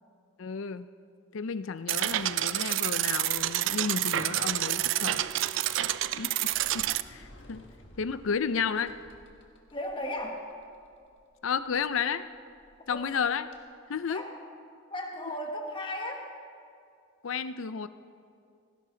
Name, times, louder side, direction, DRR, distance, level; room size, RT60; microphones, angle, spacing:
voice 1, 0.4-0.9 1.3-5.3 5.7-5.9 6.2-7.6 8.0-8.9 11.4-12.3 12.9-13.5 13.9-14.2 17.2-17.9, left 6 dB, 85° left, 13 dB, 0.5 m, -32 dB
sound 1, 1.9-7.0, right 13 dB, 70° right, 0.4 m, -28 dB
Sliding door, 4.0-13.6, left 1 dB, 65° left, 1.6 m, -57 dB
Acoustic guitar, 4.5-7.7, left 5 dB, 10° left, 4.0 m, -53 dB
voice 2, 9.7-10.4 12.9-13.0 14.1-14.3 14.9-16.3, left 1 dB, 25° left, 2 dB, 1.3 m, -35 dB
18.5 x 16.0 x 3.9 m, 2.4 s
head